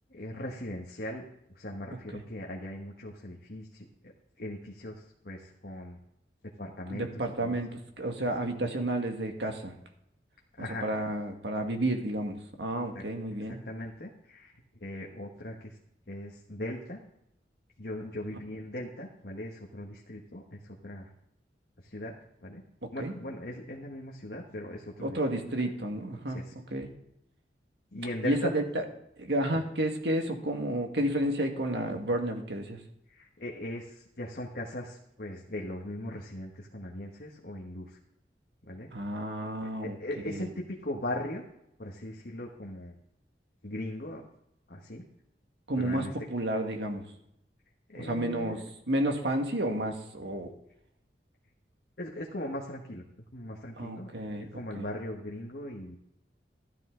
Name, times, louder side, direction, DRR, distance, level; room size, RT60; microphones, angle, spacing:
voice 1, 0.1-1.3 1.5-3.8 4.4-6.0 6.6-7.6 10.6-10.9 12.9-13.0 13.4-15.7 16.1-17.0 17.8-21.1 21.8-22.1 22.4-22.6 22.9-25.2 26.3-26.5 27.9-28.5 33.1-38.0 38.6-38.9 39.6-41.4 41.8-42.9 43.6-44.2 44.7-45.0 45.8-46.1 47.9-48.6 52.0-53.0 53.3-56.0, left 1 dB, 60° left, -1 dB, 1.4 m, -39 dB
voice 2, 6.9-7.7 8.0-9.7 10.6-13.6 22.8-23.1 25.0-26.4 26.7-26.9 28.2-28.8 29.2-32.8 38.9-40.0 40.2-40.5 45.7-47.0 48.0-50.5 53.8-54.5 54.8-54.9, right 1 dB, 80° right, 4 dB, 1.8 m, -31 dB
13.5 x 11.5 x 3.8 m, 0.79 s
head